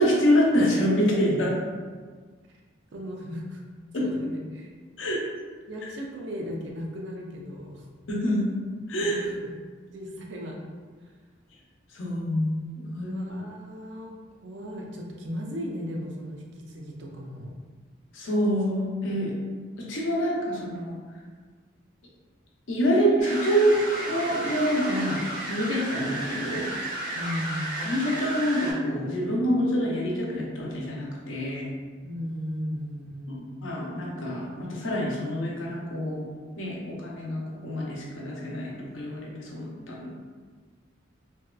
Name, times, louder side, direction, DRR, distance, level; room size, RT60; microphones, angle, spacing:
voice 1, 0.0-1.6 3.9-4.0 5.0-5.2 8.1-8.4 8.9-9.2 11.9-13.2 18.1-19.3 19.8-21.0 22.7-23.8 24.1-25.2 25.5-26.7 27.8-31.7 33.6-36.3 36.6-40.3, equal, 85° left, -3 dB, 0.6 m, -26 dB
voice 2, 2.9-3.6 3.9-4.7 5.7-7.9 9.0-9.5 9.9-10.6 13.0-17.6 27.1-27.9 32.0-33.7, equal, 65° right, 0 dB, 0.4 m, -36 dB
sound 1, 23.2-28.7, right 1 dB, 45° left, 1.0 m, -33 dB
2.7 x 2.3 x 2.2 m, 1.5 s
head